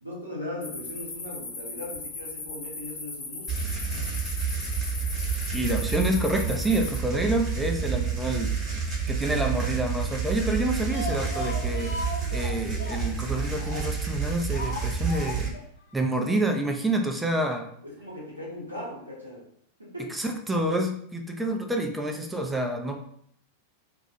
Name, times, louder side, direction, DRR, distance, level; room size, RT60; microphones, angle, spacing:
voice 1, 0.0-3.8 17.8-19.5 19.8-20.2, left 1 dB, 85° right, -5 dB, 0.8 m, -38 dB
sound 1, 0.6-7.0, left 3 dB, 35° left, 0.7 m, -38 dB
sound 2, 3.5-15.5, right 6 dB, 25° right, 0.9 m, -29 dB
voice 2, 5.5-8.8 9.1-12.0 12.3-15.5 15.9-17.7 20.1-23.0, right 1 dB, 10° right, 3 dB, 0.3 m, -28 dB
Speech, 10.6-14.1 14.5-15.7 15.9-16.0 16.3-16.4, left 2 dB, 75° left, 0.6 m, -37 dB
2.2 x 2.0 x 2.7 m, 0.66 s
figure-of-eight pair, 90°, 0 cm